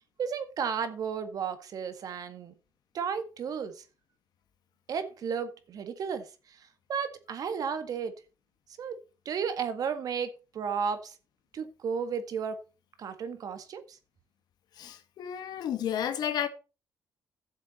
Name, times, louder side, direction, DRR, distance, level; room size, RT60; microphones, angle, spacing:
voice 1, 0.2-2.5 2.9-3.8 4.9-6.3 6.9-8.1 8.8-9.0 9.3-10.3 10.5-11.1 11.5-12.6 13.0-14.0, right 6 dB, 60° right, 1.7 m, -33 dB
voice 2, 14.8-16.5, left 9 dB, 75° left, 1.6 m, -32 dB
13.0 x 7.3 x 4.3 m
cardioid pair, 100°, 7 cm